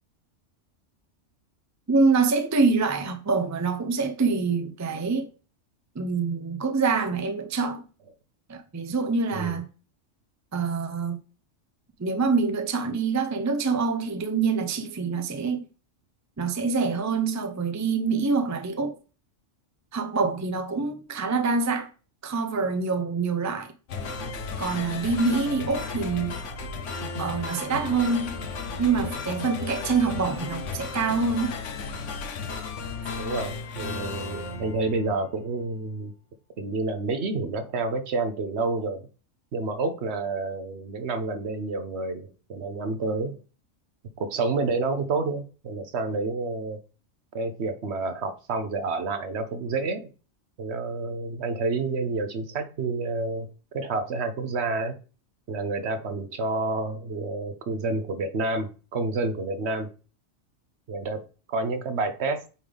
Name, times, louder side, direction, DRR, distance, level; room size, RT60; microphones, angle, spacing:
voice 1, 1.9-5.3 5.9-7.8 8.5-9.7 10.5-11.2 12.0-15.7 16.4-19.0 19.9-21.9 22.2-23.7 24.6-26.4 27.2-28.4 28.8-31.6, right 4 dB, 20° right, 0.5 m, -25 dB
sound 1, 23.9-35.5, left 4 dB, 75° left, 1.2 m, -34 dB
voice 2, 33.2-36.1 36.6-39.1 39.5-43.4 44.2-46.8 47.3-50.1 50.6-53.5 53.7-55.0 55.5-59.9 60.9-61.2 61.5-62.4, right 3 dB, 65° right, 1.1 m, -29 dB
8.7 x 3.8 x 3.4 m
omnidirectional pair, 1.3 m